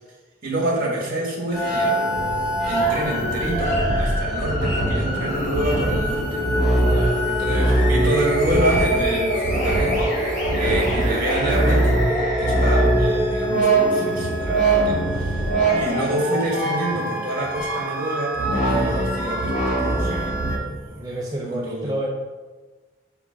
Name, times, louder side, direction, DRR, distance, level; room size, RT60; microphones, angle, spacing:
voice 1, 0.4-2.0 2.6-6.5 7.3-10.1 10.5-11.9 12.4-15.5 15.8-21.9, right 1 dB, 50° right, -1 dB, 2.0 m, -27 dB
sound 1, 1.5-20.6, right 1 dB, 40° left, 1.9 m, -22 dB
voice 2, 6.7-7.2 20.9-22.1, right 1 dB, 20° right, -2 dB, 0.6 m, -30 dB
5.7 x 4.5 x 6.1 m, 1.3 s
head